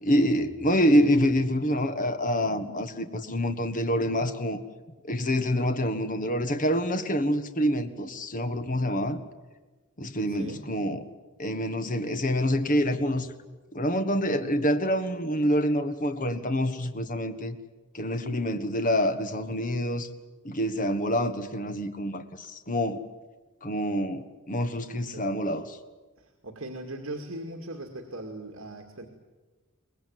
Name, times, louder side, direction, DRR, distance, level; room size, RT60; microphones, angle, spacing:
voice 1, 0.0-4.6 5.1-9.2 10.0-11.1 11.4-13.3 13.7-17.6 17.9-20.1 20.4-23.0 23.6-25.8, equal, 40° left, 9 dB, 1.5 m, -26 dB
voice 2, 10.3-10.6 25.1-25.3 26.2-29.1, right 1 dB, 70° right, 2 dB, 2.3 m, -39 dB
24.0 x 20.0 x 9.4 m, 1.3 s
head